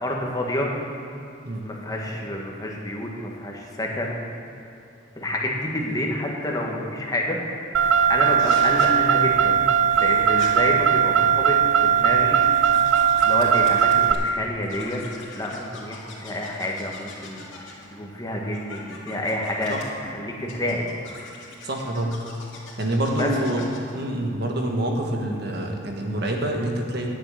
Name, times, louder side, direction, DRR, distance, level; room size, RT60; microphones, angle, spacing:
voice 1, 0.0-0.8 1.6-4.2 5.2-9.6 10.0-12.4 13.2-15.0 15.3-19.8 20.0-20.9 23.2-23.3, left 1 dB, 20° left, -1 dB, 1.4 m, -28 dB
Car, 7.7-14.1, right 8 dB, 90° right, 0.6 m, -19 dB
sound 1, 8.4-8.9 9.9-10.5 11.5-14.3 14.6-17.9 18.5-19.8 20.5-23.9, left 3 dB, 85° left, 2.6 m, -42 dB
voice 2, 21.6-22.2 22.8-23.6 23.9-27.1, right 1 dB, 60° right, 1 dB, 1.5 m, -26 dB
10.0 x 7.3 x 9.0 m, 2.7 s
head